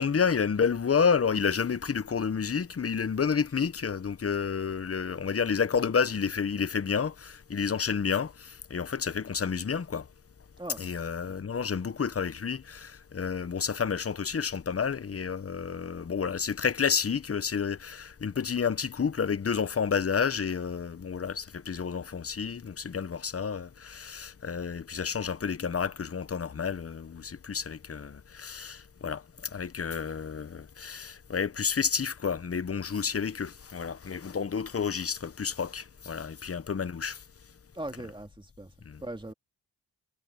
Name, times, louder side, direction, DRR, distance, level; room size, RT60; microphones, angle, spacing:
voice 1, 0.0-10.0 10.8-29.2 29.5-37.2 38.9-39.0, left 6 dB, 35° left, 0.8 m, -30 dB
voice 2, 37.7-38.7 39.0-39.3, right 1 dB, 10° right, 2.2 m, -39 dB
wide cardioid pair, 80°, 42 cm